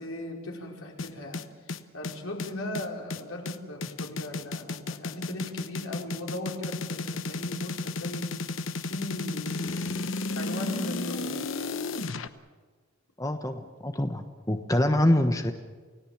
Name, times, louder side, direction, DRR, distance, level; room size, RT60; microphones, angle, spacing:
voice 1, 0.0-1.4 1.9-8.5 8.8-10.0 10.3-11.4, left 1 dB, 85° left, 0 dB, 5.1 m, -37 dB
sound 1, 1.0-12.3, left 3 dB, 65° left, 1.0 m, -33 dB
voice 2, 13.2-15.5, left 1 dB, 15° left, 6 dB, 1.1 m, -25 dB
29.0 x 17.5 x 7.3 m, 1.4 s
head